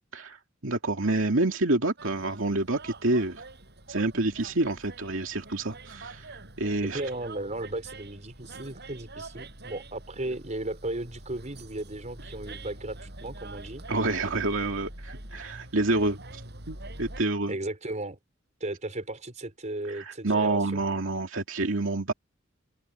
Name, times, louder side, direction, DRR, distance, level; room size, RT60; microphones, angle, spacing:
voice 1, 0.6-3.4 3.9-6.3 6.6-7.0 13.9-16.2 16.7-17.5 19.9-22.1, right 2 dB, 70° right, 2.6 m, -28 dB
sound 1, 2.0-17.2, right 2 dB, 55° right, 7.7 m, -45 dB
voice 2, 6.9-13.8 17.5-18.2 18.6-20.8, right 2 dB, 35° right, 4.8 m, -35 dB
head